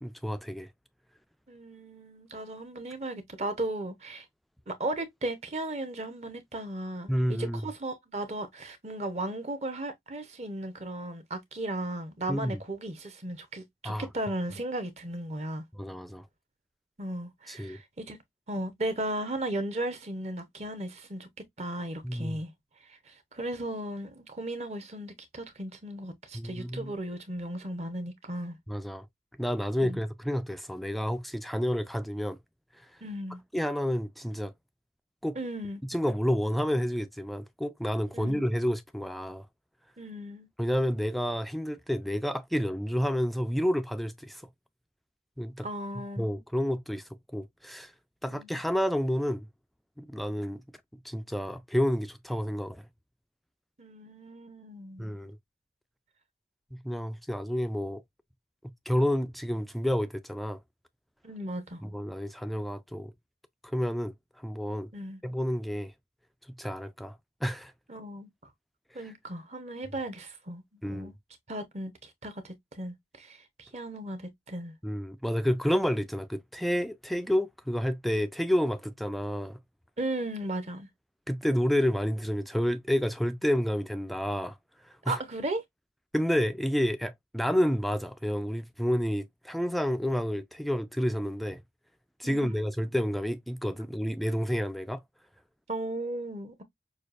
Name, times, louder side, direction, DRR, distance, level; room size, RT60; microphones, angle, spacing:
voice 1, 0.0-0.7 7.1-7.6 12.3-12.6 13.8-14.1 15.7-16.2 17.5-17.8 22.0-22.4 26.3-26.9 28.7-29.1 29.4-32.4 32.8-32.9 33.5-34.5 35.2-35.4 35.8-39.5 40.6-44.4 45.4-45.7 46.2-47.9 48.2-49.5 50.0-50.6 51.0-52.8 55.0-55.4 56.7-58.0 58.9-60.6 61.8-63.1 63.6-64.9 65.2-65.9 66.6-67.7 69.0-69.1 70.8-71.1 74.8-79.6 81.3-84.6 84.8-85.2 86.1-91.6 92.2-95.0, equal, ahead, 0.3 m, -30 dB
voice 2, 1.5-4.3 4.7-15.6 17.0-18.2 18.5-21.3 21.6-22.5 22.8-28.6 29.8-30.0 33.0-33.4 35.3-35.8 38.1-38.4 40.0-40.5 45.6-46.3 48.3-48.5 53.8-55.1 61.2-61.8 64.9-65.2 67.9-68.3 68.9-71.1 71.5-74.7 80.0-80.9 85.1-85.6 92.2-92.6 95.7-96.6, right 1 dB, 35° right, 0.9 m, -36 dB
6.3 x 2.4 x 2.5 m
head